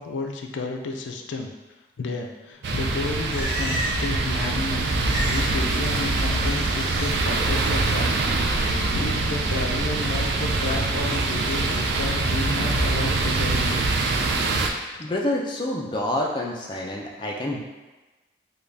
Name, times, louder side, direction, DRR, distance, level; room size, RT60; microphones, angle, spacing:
voice 1, 0.0-1.5 2.0-4.9 5.2-13.8 15.0-15.1, left 3 dB, 90° left, 3 dB, 0.4 m, -32 dB
sound 1, 2.6-14.7, right 3 dB, 65° right, 0.3 m, -24 dB
Livestock farm animals working animals, 3.0-4.2 4.4-5.5 5.8-7.1 7.5-7.9, equal, 45° left, 1.5 m, -35 dB
voice 2, 15.0-17.6, left 1 dB, 25° left, -2 dB, 0.4 m, -27 dB
3.8 x 2.3 x 3.3 m, 1.2 s
head